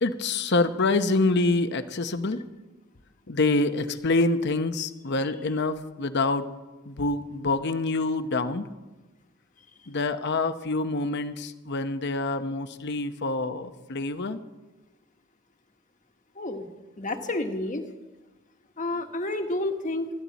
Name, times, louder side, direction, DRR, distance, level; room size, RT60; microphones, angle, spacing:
voice 1, 0.0-2.4 3.3-6.5 6.9-8.7 9.9-14.4, left 3 dB, 55° left, 10 dB, 0.9 m, -26 dB
voice 2, 16.4-16.7 17.0-17.8 18.8-20.1, left 2 dB, 35° left, 6 dB, 1.4 m, -30 dB
20.5 x 13.5 x 4.1 m, 1.1 s
head